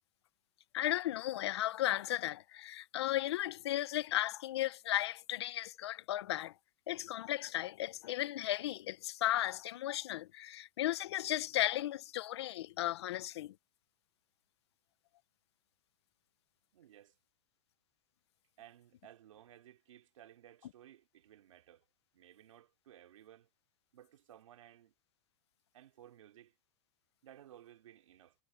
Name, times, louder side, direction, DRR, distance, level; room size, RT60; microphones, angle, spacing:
voice 1, 0.7-6.5 6.9-13.5, left 14 dB, 55° left, 0.9 m, -35 dB
voice 2, 16.7-17.1 18.6-21.8 22.1-23.5 23.9-24.9 25.7-26.5 27.2-28.3, right 11 dB, 85° right, 3.1 m, -58 dB
supercardioid pair, 175°, 16 cm